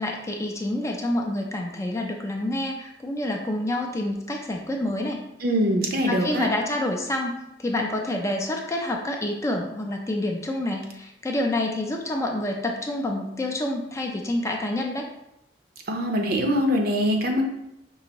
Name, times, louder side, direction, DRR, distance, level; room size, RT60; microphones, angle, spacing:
voice 1, 0.0-5.2 6.1-15.1, left 1 dB, 15° left, 2 dB, 0.4 m, -28 dB
voice 2, 5.4-6.5 15.9-17.4, equal, 55° right, 3 dB, 0.6 m, -23 dB
5.4 x 2.5 x 2.9 m, 0.82 s
head